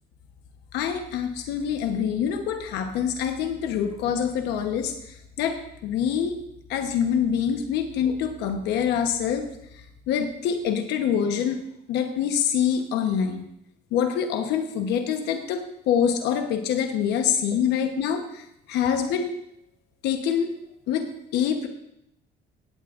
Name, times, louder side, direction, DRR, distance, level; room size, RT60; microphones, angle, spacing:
voice 1, 0.7-6.4 6.7-9.5 9.7-11.6 11.9-13.4 13.9-19.3 20.0-20.5 20.9-21.7, left 8 dB, 85° left, 5 dB, 1.1 m, -25 dB
16.0 x 8.6 x 2.5 m, 0.81 s
cardioid pair, 110°, 17 cm